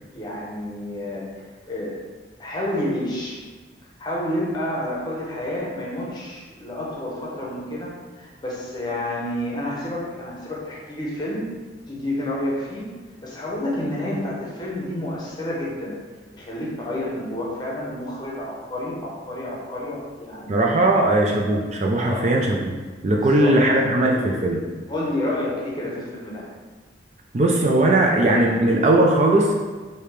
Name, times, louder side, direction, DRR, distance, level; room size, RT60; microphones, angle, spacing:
voice 1, 0.1-2.0 2.4-3.4 4.0-11.4 11.9-12.9 13.2-16.0 16.3-20.8 22.1-22.3 23.1-23.6 24.9-26.5, left 1 dB, 20° left, -5 dB, 0.8 m, -29 dB
voice 2, 20.5-22.7 23.0-24.6 27.3-29.5, right 1 dB, 35° right, 0 dB, 0.4 m, -19 dB
4.9 x 2.8 x 3.2 m, 1.4 s
head